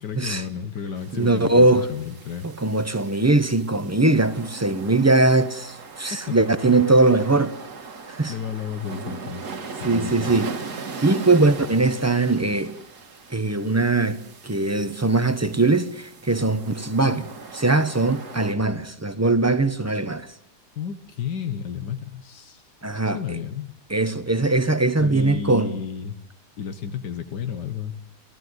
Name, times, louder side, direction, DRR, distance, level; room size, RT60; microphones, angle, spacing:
voice 1, 0.0-2.5 6.6-6.8 8.3-9.4 9.8-10.4 19.9-20.1 20.8-22.6 22.9-23.7 25.0-26.1 26.6-27.9, left 7 dB, 85° left, 1.8 m, -32 dB
sound 1, 1.0-18.5, right 4 dB, 75° right, 2.0 m, -39 dB
voice 2, 1.1-1.9 2.4-7.5 8.1-8.3 9.8-10.5 11.0-12.8 13.3-20.3 22.8-23.4 23.9-25.8, right 2 dB, 15° right, 0.5 m, -21 dB
29.5 x 16.0 x 8.0 m
omnidirectional pair, 1.8 m